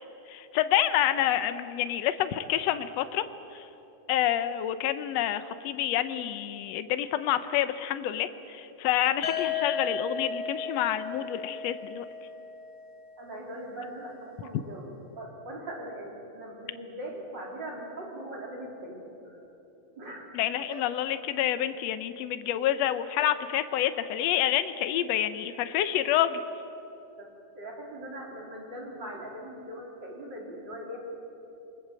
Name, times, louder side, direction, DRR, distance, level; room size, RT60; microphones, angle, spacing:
voice 1, 0.3-3.2 3.5-3.7 4.1-12.1 20.3-26.4, left 11 dB, 80° left, 11 dB, 1.5 m, -28 dB
sound 1, 9.2-13.1, left 5 dB, 50° left, 3.2 m, -34 dB
voice 2, 13.2-14.9 15.2-19.4 20.0-20.3 20.7-20.8 27.2-27.3 27.5-31.0, right 1 dB, 30° right, -1 dB, 4.3 m, -40 dB
28.5 x 21.0 x 7.5 m, 2.9 s
omnidirectional pair, 4.0 m